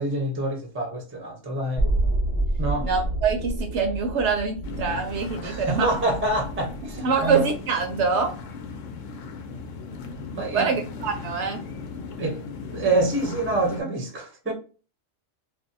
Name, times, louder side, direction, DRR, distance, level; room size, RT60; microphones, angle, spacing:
voice 1, 0.0-1.8 2.6-2.9 5.4-7.5 10.3-10.7 12.2-12.4 12.7-14.5, right 2 dB, 15° right, 0.5 m, -26 dB
sound 1, 1.8-7.7 8.1-8.2, right 2 dB, 25° left, 1.1 m, -29 dB
voice 2, 2.8-5.9 7.0-8.3 10.5-11.6, right 5 dB, 70° right, 0.8 m, -25 dB
sound 2, 4.6-13.8, left 4 dB, 80° left, 0.9 m, -37 dB
2.6 x 2.1 x 2.6 m
omnidirectional pair, 1.3 m